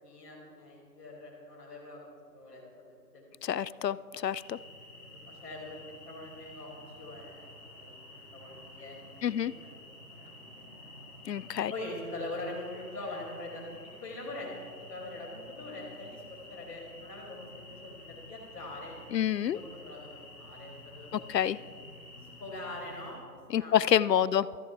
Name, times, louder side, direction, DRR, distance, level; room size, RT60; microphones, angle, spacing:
voice 1, 0.0-4.3 5.0-10.7 11.7-13.7 14.0-18.9 19.4-21.3 22.4-23.2 23.6-23.8, left 2 dB, 20° left, -11 dB, 2.3 m, -44 dB
voice 2, 3.4-4.0 4.2-4.6 9.2-9.5 11.3-11.7 19.1-19.6 21.3-21.6 23.5-24.5, left 10 dB, 75° left, 18 dB, 0.5 m, -27 dB
sound 1, 4.3-23.2, left 2 dB, 5° right, 3.2 m, -50 dB
16.5 x 13.5 x 3.5 m, 2.2 s
figure-of-eight pair, 170°, 50 cm